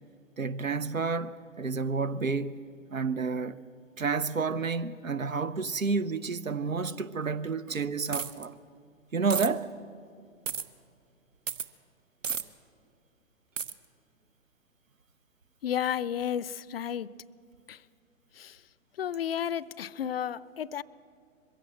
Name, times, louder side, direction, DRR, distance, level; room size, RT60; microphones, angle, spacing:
voice 1, 0.4-2.6 2.9-3.6 4.0-8.5 9.1-9.7, right 4 dB, 90° right, 0.8 m, -30 dB
sound 1, 8.1-8.5 9.3-9.5 10.5-10.6 11.5-11.7 12.2-12.4 13.6-13.7, right 6 dB, 70° right, 1.0 m, -32 dB
voice 2, 15.6-17.1 17.7-17.8 18.4-18.6 19.0-20.8, left 9 dB, 50° left, 0.5 m, -32 dB
22.0 x 16.0 x 7.6 m
figure-of-eight pair, 120°, 39 cm